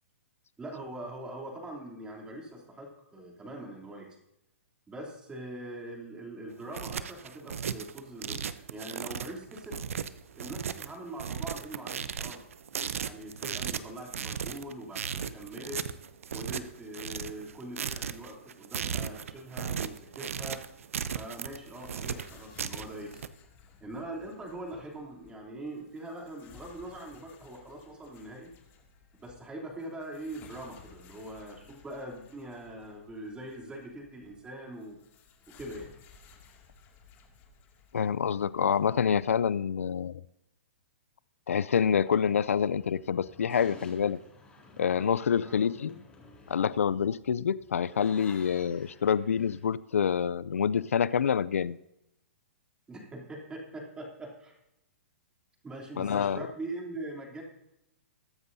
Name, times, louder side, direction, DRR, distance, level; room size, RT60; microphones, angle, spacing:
voice 1, 0.6-4.1 4.9-8.4 8.7-9.8 10.3-12.4 12.8-15.8 16.3-20.7 21.1-23.2 23.8-28.5 29.2-35.0 35.5-35.9 45.4-45.7 52.9-54.5 55.6-57.4, right 1 dB, 10° right, -1 dB, 3.0 m, -42 dB
sound 1, 6.5-23.3, right 7 dB, 80° right, 0.7 m, -36 dB
sound 2, 21.4-39.4, left 6 dB, 30° left, 2.4 m, -57 dB
voice 2, 37.9-40.2 41.5-44.2 44.8-45.9 46.5-51.8 56.0-56.5, left 7 dB, 85° left, 19 dB, 0.4 m, -27 dB
sound 3, 41.8-49.6, left 3 dB, 15° left, 3.8 m, -53 dB
21.5 x 9.6 x 2.7 m, 0.85 s
hypercardioid pair, 135°, 7 cm